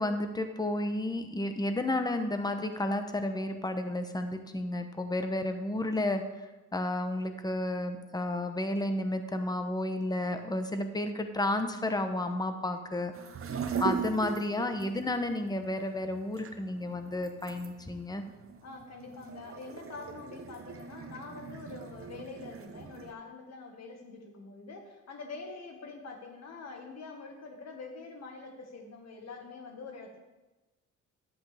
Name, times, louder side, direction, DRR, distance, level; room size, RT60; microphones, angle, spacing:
voice 1, 0.0-13.1 13.8-18.2, left 1 dB, 15° left, 7 dB, 1.0 m, -32 dB
sound 1, 13.1-23.1, right 6 dB, 45° right, 1.0 m, -39 dB
voice 2, 18.6-30.2, left 4 dB, 60° left, 3 dB, 1.8 m, -45 dB
11.5 x 7.9 x 3.5 m, 1.1 s
cardioid pair, 90°, 30 cm